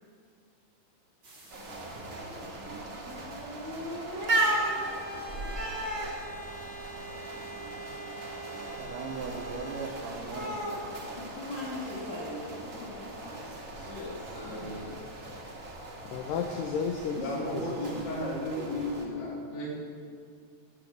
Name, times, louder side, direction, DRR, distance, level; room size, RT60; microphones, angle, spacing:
sound 1, 1.2-9.9, right 1 dB, 30° right, 3.6 m, -43 dB
sound 2, 1.5-19.1, right 1 dB, 55° right, 0.8 m, -37 dB
voice 1, 8.7-11.1, right 5 dB, 70° right, 0 dB, 2.2 m, -39 dB
voice 2, 11.3-14.8, left 2 dB, 50° left, -6 dB, 2.8 m, -41 dB
voice 3, 14.2-14.6 17.2-19.7, left 1 dB, 30° left, -5 dB, 3.0 m, -34 dB
voice 4, 16.1-18.2, left 5 dB, 75° left, 4 dB, 2.1 m, -33 dB
11.5 x 7.0 x 9.2 m, 2.2 s
omnidirectional pair, 4.5 m